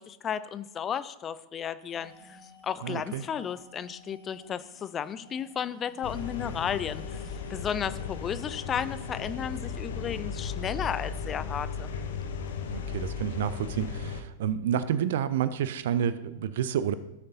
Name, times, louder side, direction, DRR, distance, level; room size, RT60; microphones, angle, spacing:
voice 1, 0.0-11.9, left 8 dB, 25° left, 15 dB, 0.4 m, -34 dB
sound 1, 1.9-9.3, right 1 dB, 80° left, 3.8 m, -54 dB
voice 2, 2.8-3.2 12.7-16.9, right 9 dB, 55° right, 14 dB, 0.5 m, -29 dB
sound 2, 6.0-14.2, left 6 dB, 60° left, 0.8 m, -36 dB
16.0 x 6.6 x 2.7 m, 0.92 s
figure-of-eight pair, 90°, 0 cm